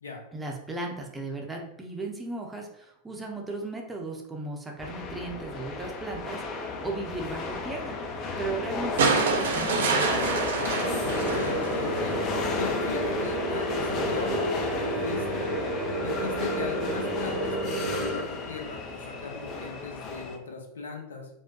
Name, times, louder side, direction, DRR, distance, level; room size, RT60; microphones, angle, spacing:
voice 1, 0.3-8.0 8.4-10.2, right 2 dB, 10° right, 0 dB, 0.6 m, -36 dB
sound 1, 4.8-20.4, left 3 dB, 35° left, 0.5 m, -33 dB
sound 2, 9.0-12.3 13.6-13.7, right 4 dB, 60° right, 0.5 m, -27 dB
sound 3, 10.8-18.2, right 1 dB, 45° right, 0.9 m, -31 dB
voice 2, 11.0-12.2 12.6-15.5 16.0-21.3, left 4 dB, 70° left, 1 dB, 0.7 m, -38 dB
4.4 x 2.1 x 2.8 m, 0.86 s
figure-of-eight pair, 90°, 0 cm